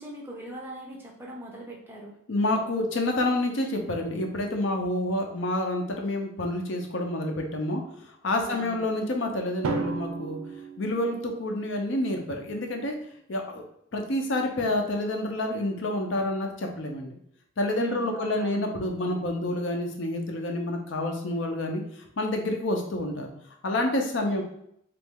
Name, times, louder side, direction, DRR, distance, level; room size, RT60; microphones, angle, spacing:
voice 1, 0.0-2.1 8.4-8.9 17.7-18.7 24.2-24.4, right 1 dB, 10° right, -2 dB, 0.5 m, -40 dB
voice 2, 2.3-10.4 10.8-13.0 13.3-13.6 13.9-17.1 17.6-23.3 23.6-24.4, left 1 dB, 60° left, 3 dB, 0.6 m, -28 dB
Drum, 9.6-11.7, right 4 dB, 85° right, 0.4 m, -33 dB
3.0 x 2.5 x 3.5 m, 0.73 s
head